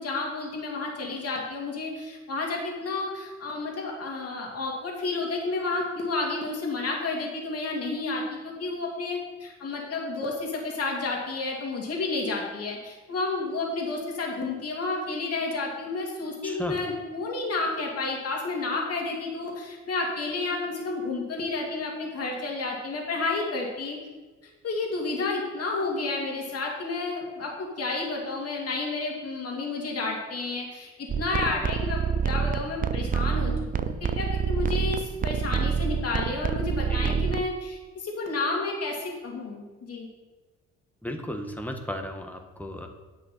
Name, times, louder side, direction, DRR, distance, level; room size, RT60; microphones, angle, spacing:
voice 1, 0.0-24.0 24.6-30.9 31.2-40.1, left 3 dB, 50° left, -1 dB, 2.6 m, -31 dB
voice 2, 16.4-16.8 36.9-37.2 41.0-42.9, equal, 5° left, 4 dB, 1.3 m, -35 dB
sound 1, 31.1-37.5, right 6 dB, 30° right, 0.4 m, -27 dB
10.5 x 7.4 x 4.4 m, 1.2 s
cardioid pair, 90°, 30 cm